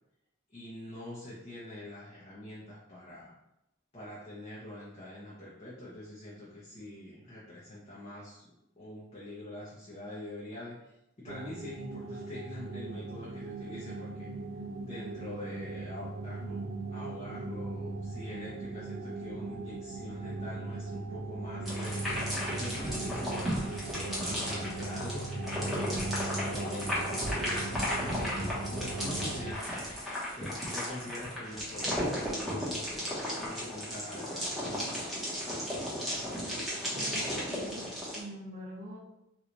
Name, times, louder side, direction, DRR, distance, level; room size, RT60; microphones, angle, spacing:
voice 1, 0.5-3.3 3.9-10.9 11.2-14.3 14.8-22.0 22.6-34.9, left 1 dB, 30° left, -7 dB, 0.7 m, -44 dB
sound 1, 11.3-29.5, right 3 dB, 75° right, 0.4 m, -39 dB
sound 2, 21.6-38.2, equal, ahead, 0.9 m, -35 dB
voice 2, 36.2-39.0, equal, 45° right, -1 dB, 0.7 m, -45 dB
3.0 x 2.3 x 3.8 m, 0.88 s
head